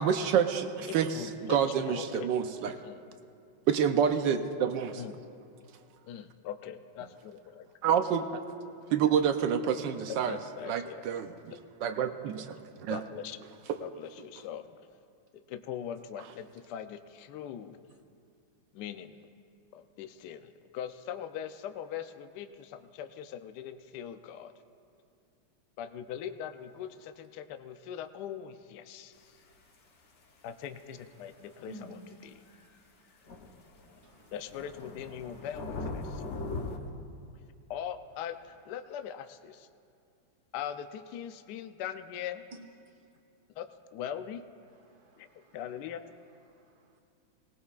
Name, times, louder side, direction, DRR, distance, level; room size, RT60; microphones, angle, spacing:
voice 1, 0.0-1.1 1.5-2.7 3.7-5.0 7.8-8.4 8.9-10.4 10.7-11.3 11.8-12.4 12.8-13.0, right 8 dB, 75° right, 8 dB, 1.2 m, -27 dB
voice 2, 0.9-2.3 2.6-3.1 5.0-5.2 6.1-7.7 10.2-11.0 11.5-11.6 12.9-13.5 13.8-14.9 15.3-17.8 18.7-19.3 19.7-24.5 25.8-29.4 30.4-32.4 34.3-36.2 37.7-39.7 40.5-42.4 43.6-44.4 45.2-46.0, left 9 dB, 75° left, 9 dB, 1.0 m, -41 dB
voice 3, 31.2-31.9 34.0-34.3 36.8-36.9 44.7-45.6 46.5-47.0, right 1 dB, 55° right, 4 dB, 1.5 m, -53 dB
sound 1, 32.5-32.6 33.3-36.8, left 3 dB, 45° left, 1.0 m, -39 dB
19.0 x 19.0 x 2.4 m, 2.4 s
omnidirectional pair, 2.2 m